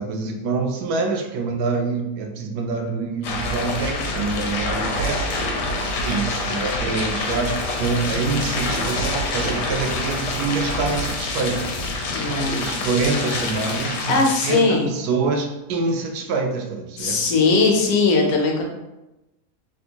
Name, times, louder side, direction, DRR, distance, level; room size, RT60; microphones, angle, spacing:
voice 1, 0.0-11.6 12.3-14.1 14.4-17.2, right 4 dB, 75° right, 3 dB, 1.0 m, -26 dB
sound 1, 3.2-14.6, left 2 dB, 85° left, 1.2 m, -26 dB
voice 2, 12.1-12.6 14.0-14.9 17.0-18.6, left 3 dB, 65° left, 0 dB, 1.1 m, -19 dB
3.5 x 2.5 x 2.8 m, 0.97 s
omnidirectional pair, 1.8 m